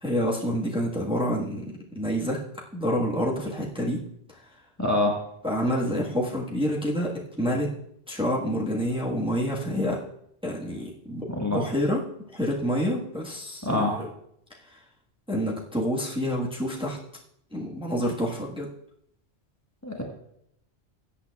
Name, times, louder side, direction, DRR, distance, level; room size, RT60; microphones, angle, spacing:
voice 1, 0.0-1.6 1.9-2.4 2.7-4.0 5.4-7.7 8.1-10.0 10.4-12.0 12.3-14.1 15.3-17.0 17.5-18.7, equal, 5° right, -4 dB, 1.4 m, -27 dB
voice 2, 4.8-5.1 11.3-11.7 13.6-13.9 19.8-20.0, left 2 dB, 15° left, -1 dB, 1.4 m, -25 dB
20.5 x 8.4 x 2.4 m, 0.75 s
omnidirectional pair, 1.1 m